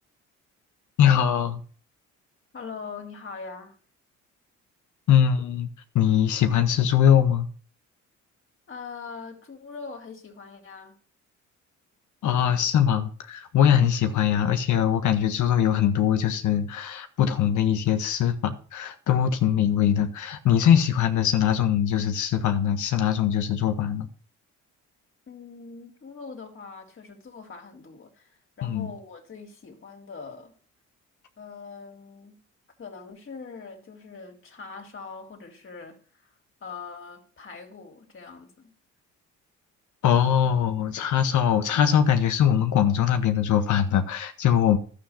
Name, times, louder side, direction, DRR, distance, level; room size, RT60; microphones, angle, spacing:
voice 1, 1.0-1.6 5.1-5.7 5.9-7.5 12.2-24.1 28.6-28.9 40.0-44.8, left 9 dB, 75° left, 1.6 m, -22 dB
voice 2, 2.5-3.7 8.7-11.0 12.3-12.7 25.3-30.6 31.4-32.4 32.8-36.3 36.6-38.7, left 5 dB, 45° left, 3.4 m, -42 dB
12.0 x 8.6 x 5.8 m
cardioid pair, 90°, 30 cm